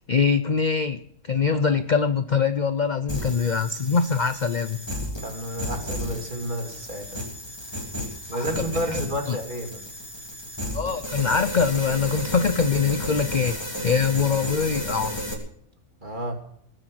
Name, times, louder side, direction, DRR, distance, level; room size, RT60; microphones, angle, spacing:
voice 1, 0.1-4.8 8.3-8.6 8.9-9.0 9.3-9.4 10.7-13.6 13.8-15.2, left 5 dB, 45° left, 11 dB, 0.6 m, -23 dB
voice 2, 1.5-1.8 5.2-7.2 8.3-9.8 16.0-16.3, equal, 30° right, 3 dB, 2.8 m, -31 dB
sound 1, 3.1-15.3, equal, 15° left, 3.3 m, -33 dB
20.0 x 7.9 x 7.7 m, 0.66 s
omnidirectional pair, 1.5 m